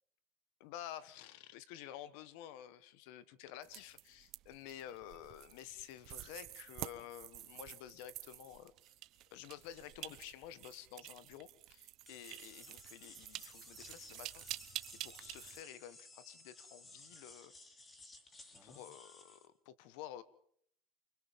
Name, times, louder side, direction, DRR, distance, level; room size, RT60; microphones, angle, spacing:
voice 1, 0.6-8.9 9.3-14.7 15.0-17.5 18.6-20.2, left 11 dB, 70° left, 14 dB, 1.4 m, -51 dB
sound 1, 3.6-15.6, right 15 dB, 55° right, 1.0 m, -49 dB
sound 2, 12.1-19.5, left 2 dB, 20° left, 3.0 m, -57 dB
29.5 x 25.0 x 3.7 m, 0.67 s
supercardioid pair, 125°, 0 cm